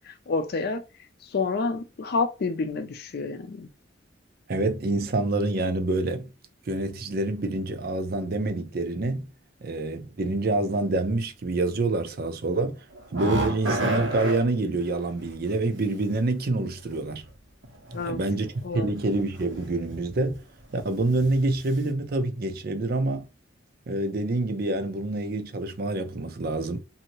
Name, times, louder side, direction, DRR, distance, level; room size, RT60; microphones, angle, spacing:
voice 1, 0.3-0.8 1.3-3.7 17.9-18.2 18.6-18.9, left 4 dB, 55° left, 0.5 m, -28 dB
voice 2, 4.5-6.3 6.7-9.3 9.6-12.8 13.1-17.2 18.1-20.4 20.7-23.3 23.9-26.8, right 2 dB, 55° right, 0.6 m, -27 dB
sound 1, 12.9-14.4 16.6-16.7 17.6-18.1 18.4-18.6 19.3-19.7 20.1-20.2 20.6-20.7, right 1 dB, 90° right, 1.2 m, -28 dB
2.7 x 2.7 x 2.9 m
head